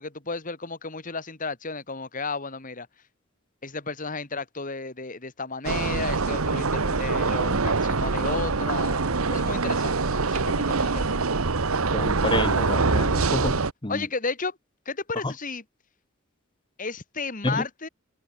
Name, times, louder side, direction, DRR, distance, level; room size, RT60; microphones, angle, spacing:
voice 1, 0.0-2.9 3.6-10.0 10.3-11.2 13.9-14.6 14.9-15.6 16.8-17.9, left 4 dB, 40° left, 2.3 m, -33 dB
sound 1, 5.6-13.7, right 4 dB, 90° right, 1.2 m, -24 dB
voice 2, 11.9-13.6 13.8-14.0 17.4-17.6, left 2 dB, 25° left, 1.1 m, -28 dB
head